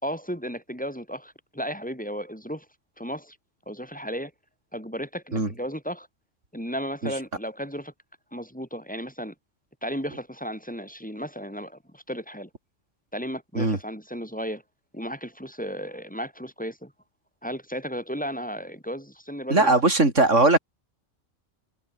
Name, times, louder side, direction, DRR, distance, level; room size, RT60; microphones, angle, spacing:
voice 1, 0.0-2.7 3.0-3.4 3.7-4.3 4.7-6.1 6.5-7.9 8.3-9.3 9.8-12.5 13.1-14.6 14.9-16.9 17.4-19.8, equal, 5° left, 4.7 m, -34 dB
voice 2, 19.5-20.6, right 2 dB, 75° right, 4.9 m, -19 dB
omnidirectional pair, 1.3 m